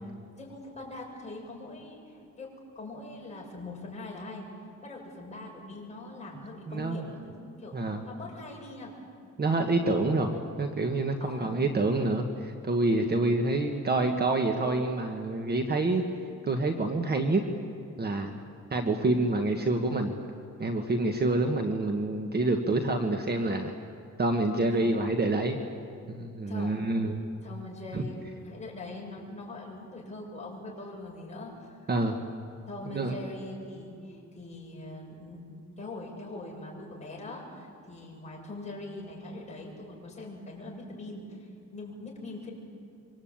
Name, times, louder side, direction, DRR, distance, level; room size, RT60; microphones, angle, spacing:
voice 1, 0.4-2.5 2.8-4.5 4.8-8.9 11.2-11.9 24.8-25.1 26.5-26.8 27.4-31.9 32.7-42.5, left 2 dB, 20° left, -2 dB, 7.3 m, -42 dB
voice 2, 6.7-7.0 7.7-8.0 9.4-16.0 16.4-17.4 18.0-18.3 18.7-20.1 20.6-23.7 24.2-25.6 26.1-27.2 27.9-28.0 31.9-32.2 32.9-33.2, right 2 dB, 30° right, 4 dB, 1.6 m, -27 dB
26.0 x 24.0 x 8.9 m, 2.5 s
cardioid pair, 140°, 30 cm